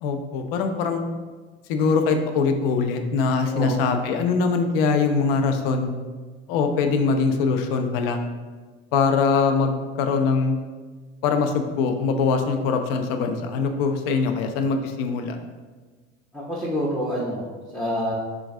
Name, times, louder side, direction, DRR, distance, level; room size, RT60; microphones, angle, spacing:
voice 1, 0.0-1.0 1.7-5.9 6.5-8.2 8.9-10.5 11.2-15.4, left 4 dB, 60° left, 6 dB, 0.5 m, -22 dB
voice 2, 3.4-3.8 16.3-18.1, equal, ahead, -6 dB, 0.5 m, -27 dB
3.8 x 2.4 x 2.4 m, 1.4 s
hypercardioid pair, 70°, 33 cm